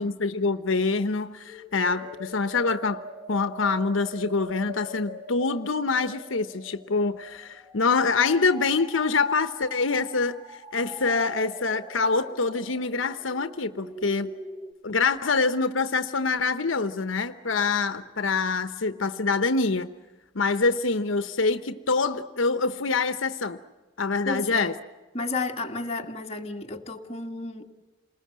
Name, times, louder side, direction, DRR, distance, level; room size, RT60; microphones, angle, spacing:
voice 1, 0.0-3.0 3.3-14.3 14.8-19.9 20.3-23.6 24.0-24.7, left 4 dB, 85° left, 1.0 m, -25 dB
sound 1, 1.4-14.7, equal, 10° right, 2.3 m, -43 dB
voice 2, 24.3-24.7 25.1-27.8, left 3 dB, 35° left, 1.8 m, -32 dB
29.0 x 20.5 x 7.6 m
head